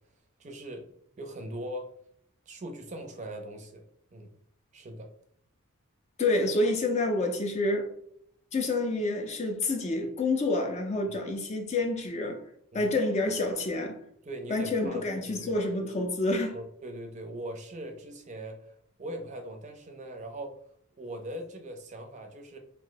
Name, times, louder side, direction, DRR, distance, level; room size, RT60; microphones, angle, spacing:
voice 1, 0.4-0.8 1.2-1.9 2.5-3.8 4.1-4.3 4.7-5.1 12.7-12.9 14.2-15.5 16.5-18.6 19.0-20.5 21.0-22.6, right 1 dB, 35° right, 0.5 m, -40 dB
voice 2, 6.2-7.9 8.5-12.4 12.7-14.0 14.5-16.6, left 2 dB, 30° left, 0.4 m, -28 dB
2.6 x 2.1 x 3.8 m
head